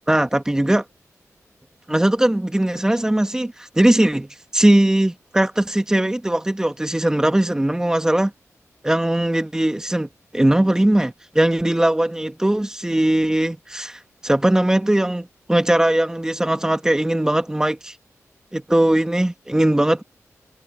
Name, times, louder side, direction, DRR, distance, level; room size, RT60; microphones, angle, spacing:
voice 1, 0.1-0.8 1.9-8.3 8.8-17.9 18.5-20.0, right 1 dB, 10° right, 1.6 m, -19 dB
wide cardioid pair, 125°, 6 cm